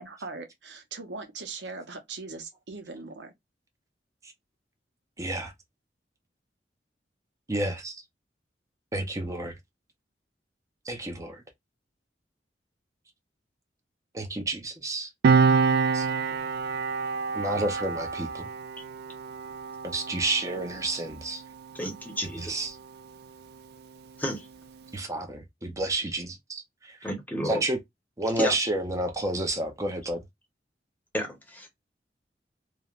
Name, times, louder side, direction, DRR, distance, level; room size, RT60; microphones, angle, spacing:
voice 1, 0.0-3.3, right 4 dB, 85° right, 0.7 m, -40 dB
voice 2, 5.2-5.5 7.5-8.0 8.9-9.5 10.9-11.4 14.1-15.1 15.9-16.1 17.3-18.5 19.8-21.4 22.4-22.8 24.9-26.6 27.4-27.8 28.2-30.2, right 2 dB, 20° right, 0.6 m, -30 dB
Piano, 15.2-22.3 22.5-22.8, right 5 dB, 60° right, 0.3 m, -27 dB
voice 3, 21.7-22.5 24.2-24.5 27.0-27.6 28.4-28.6 31.1-31.7, equal, 10° left, 0.8 m, -31 dB
3.2 x 2.1 x 2.4 m
head